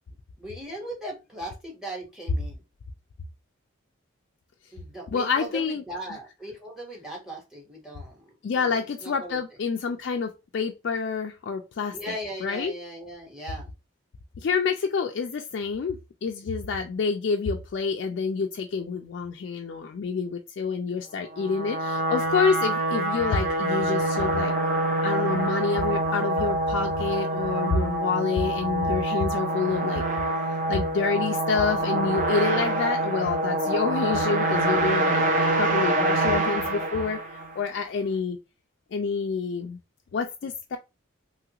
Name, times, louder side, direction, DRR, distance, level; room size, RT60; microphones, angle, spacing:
voice 1, 0.4-2.6 4.7-9.4 11.9-13.7, right 1 dB, ahead, 1.1 m, -38 dB
voice 2, 5.1-5.8 8.4-12.1 12.4-12.7 14.4-24.5 25.0-30.0 30.7-38.4 38.9-39.8 40.1-40.8, left 5 dB, 55° left, 0.3 m, -28 dB
sound 1, 21.3-37.6, right 2 dB, 40° right, 0.5 m, -26 dB
3.0 x 2.4 x 2.8 m
head